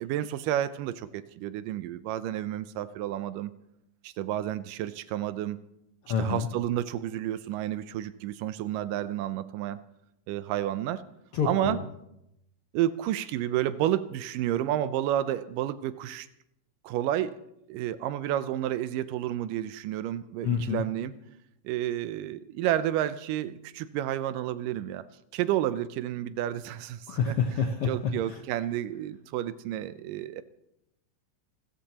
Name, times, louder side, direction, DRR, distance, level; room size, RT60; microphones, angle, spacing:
voice 1, 0.0-3.5 4.0-5.6 6.2-9.8 10.3-11.0 11.4-11.8 12.7-16.3 16.8-17.4 17.7-21.1 21.6-25.0 25.3-27.4 27.8-30.4, right 12 dB, 85° right, 14 dB, 2.2 m, -30 dB
voice 2, 6.0-6.5 11.3-11.8 20.4-20.8 27.1-27.9 28.3-28.4, left 6 dB, 70° left, 4 dB, 1.4 m, -27 dB
30.0 x 13.5 x 2.9 m, 0.84 s
omnidirectional pair, 3.8 m